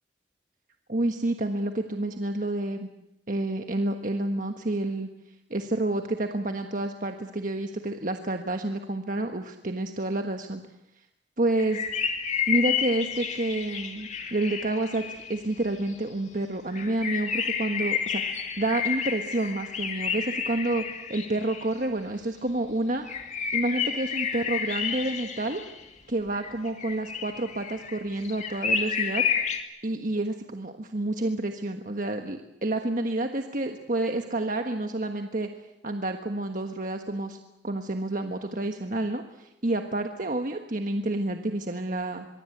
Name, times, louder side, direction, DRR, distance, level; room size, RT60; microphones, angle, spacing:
voice 1, 0.9-2.9 3.3-5.1 5.5-10.6 11.4-11.8 12.5-20.8 21.1-23.0 23.5-25.6 26.1-29.2 29.8-35.5 35.8-37.4 37.6-42.3, right 2 dB, 50° right, 5 dB, 1.4 m, -29 dB
sound 1, 11.6-15.9 16.7-21.8 23.1-25.8 26.3-29.6, left 7 dB, 40° left, 2.5 m, -30 dB
24.0 x 23.5 x 8.1 m, 0.88 s
head